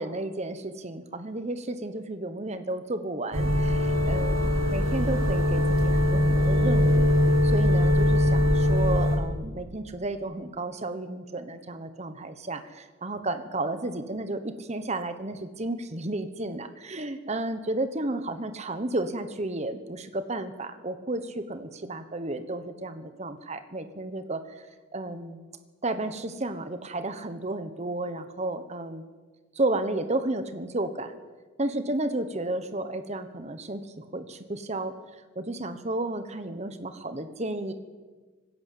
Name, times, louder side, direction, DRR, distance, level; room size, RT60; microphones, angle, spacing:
voice 1, 0.0-7.1 7.4-24.4 24.9-25.4 25.8-29.0 29.5-31.2 31.6-34.9 35.4-37.7, right 2 dB, 35° right, 10 dB, 1.1 m, -32 dB
sound 1, 3.3-9.2, left 1 dB, 85° right, 3.7 m, -22 dB
19.5 x 16.0 x 8.5 m, 1.4 s
head